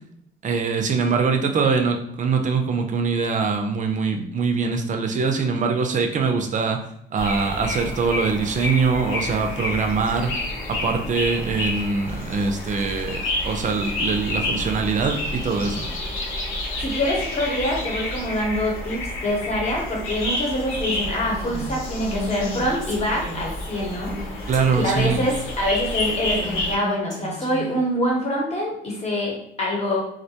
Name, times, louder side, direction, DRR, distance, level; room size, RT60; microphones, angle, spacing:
voice 1, 0.4-6.8 7.1-10.3 10.7-15.9 24.5-25.3, right 5 dB, 40° right, 5 dB, 0.4 m, -23 dB
sound 1, 7.2-26.8, left 2 dB, 90° left, 0.7 m, -30 dB
voice 2, 16.8-30.0, equal, 35° left, -2 dB, 0.9 m, -25 dB
Female speech woman speaking, 20.8-27.8, equal, 5° left, 1.0 m, -35 dB
2.3 x 2.1 x 2.8 m, 0.76 s
cardioid pair, 90°, 20 cm